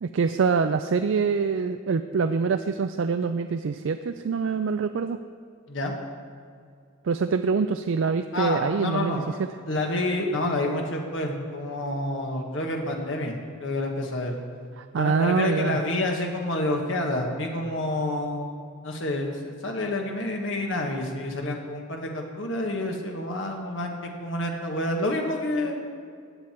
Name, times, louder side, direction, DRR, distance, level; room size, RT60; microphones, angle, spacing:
voice 1, 0.0-5.2 7.0-9.5 14.8-15.8, right 5 dB, 75° right, 9 dB, 0.4 m, -25 dB
voice 2, 8.3-9.2 9.7-14.3 15.0-18.5 18.8-23.9 24.2-25.8, left 1 dB, 70° left, 2 dB, 1.6 m, -28 dB
16.0 x 9.3 x 4.5 m, 2.2 s
head